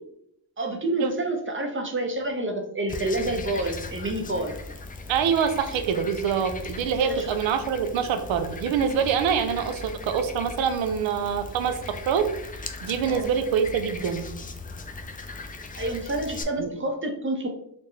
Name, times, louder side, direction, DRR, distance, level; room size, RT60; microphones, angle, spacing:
voice 1, 0.6-4.6 7.0-7.3 13.0-13.3 15.8-17.5, right 1 dB, 30° right, 3 dB, 0.6 m, -28 dB
Frog, 2.9-16.4, left 3 dB, 20° left, 0.3 m, -39 dB
voice 2, 5.1-12.3 12.8-14.3 16.6-16.7, right 7 dB, 80° right, 8 dB, 0.6 m, -25 dB
4.2 x 2.1 x 3.2 m, 0.74 s
cardioid pair, 70°, 45 cm